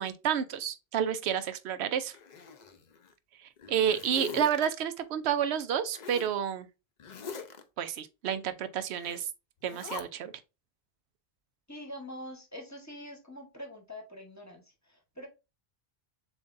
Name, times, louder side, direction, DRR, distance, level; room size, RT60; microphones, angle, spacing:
voice 1, 0.0-2.2 3.7-6.7 7.8-9.3 9.6-10.3, right 8 dB, 85° right, 0.9 m, -30 dB
Zipper (clothing), 2.1-3.1 3.6-4.7 5.9-6.4 7.0-7.6 8.9-9.2 9.6-10.0, left 6 dB, 50° left, 0.7 m, -43 dB
voice 2, 11.7-15.3, left 1 dB, 15° left, 1.0 m, -44 dB
7.1 x 2.6 x 2.5 m
omnidirectional pair, 1.1 m